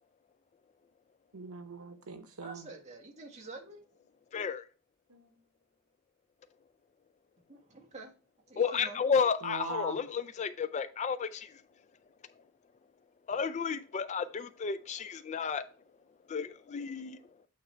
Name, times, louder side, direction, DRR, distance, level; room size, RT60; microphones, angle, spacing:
voice 1, 1.3-2.7 5.1-5.4 9.4-10.0, right 5 dB, 85° right, 0.9 m, -42 dB
voice 2, 2.4-3.8 7.5-8.1 8.5-9.0, right 3 dB, 30° right, 1.4 m, -47 dB
voice 3, 4.3-4.6 8.6-11.6 13.3-15.6 16.3-17.2, left 6 dB, 35° left, 0.3 m, -32 dB
8.6 x 3.2 x 4.4 m
head